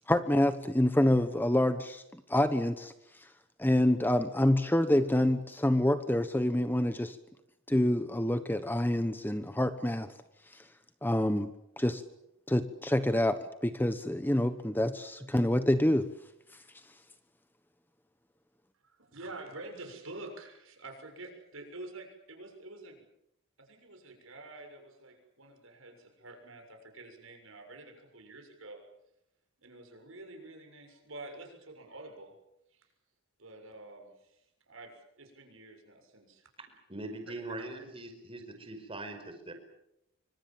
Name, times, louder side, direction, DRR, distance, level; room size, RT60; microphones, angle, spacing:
voice 1, 0.1-2.0 2.3-2.9 3.6-7.2 7.7-10.1 11.0-11.5 11.8-12.0 12.5-16.1, left 1 dB, 10° left, 10 dB, 1.1 m, -27 dB
voice 2, 18.8-23.0 23.6-28.8 29.6-32.3 32.7-32.9 33.4-34.4 34.7-36.8 37.5-37.6, right 2 dB, 70° right, 4 dB, 7.0 m, -48 dB
voice 3, 36.9-39.5, right 2 dB, 25° right, 6 dB, 5.0 m, -41 dB
26.5 x 25.0 x 7.5 m, 0.82 s
head